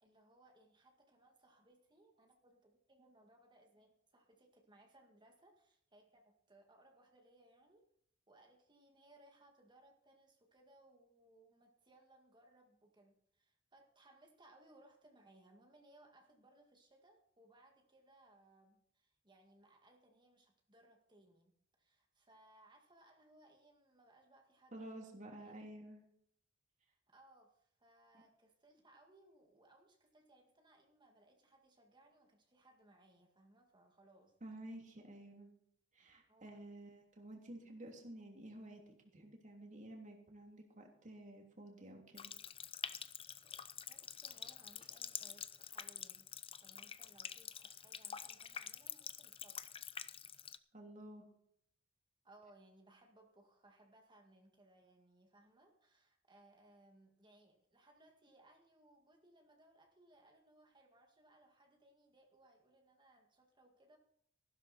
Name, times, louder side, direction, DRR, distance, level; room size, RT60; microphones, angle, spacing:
voice 1, 0.0-7.9 8.3-21.5 21.8-25.7 26.9-34.4 36.3-36.8 43.9-49.9 52.2-64.0, right 1 dB, 25° right, 3 dB, 2.0 m, -66 dB
voice 2, 24.7-26.0 28.1-28.2 34.4-35.5 35.9-42.3 50.7-51.2, right 1 dB, 40° right, 1 dB, 3.1 m, -52 dB
Water tap faucet, 42.1-50.6, left 8 dB, 30° left, 0.7 m, -47 dB
15.0 x 12.5 x 4.3 m, 0.67 s
head